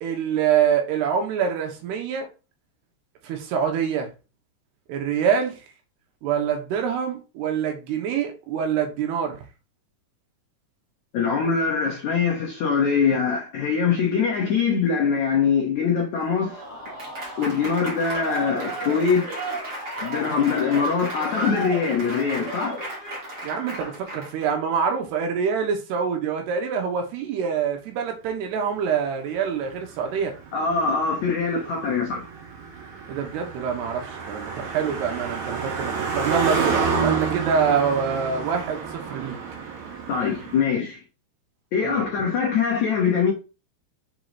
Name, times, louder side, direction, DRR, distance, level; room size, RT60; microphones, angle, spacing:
voice 1, 0.0-2.3 3.2-4.1 4.9-5.6 6.2-9.4 23.4-30.3 33.1-39.4 41.8-42.0, right 7 dB, 80° right, 3.2 m, -25 dB
voice 2, 11.1-16.6 17.4-19.3 20.0-22.8 30.5-32.3 40.1-41.0 41.7-43.3, left 6 dB, 75° left, 1.6 m, -23 dB
Applause / Crowd, 16.3-24.5, right 1 dB, 40° right, 1.5 m, -33 dB
Car passing by, 29.4-40.6, right 5 dB, 65° right, 1.9 m, -29 dB
6.8 x 5.2 x 3.0 m
omnidirectional pair, 4.9 m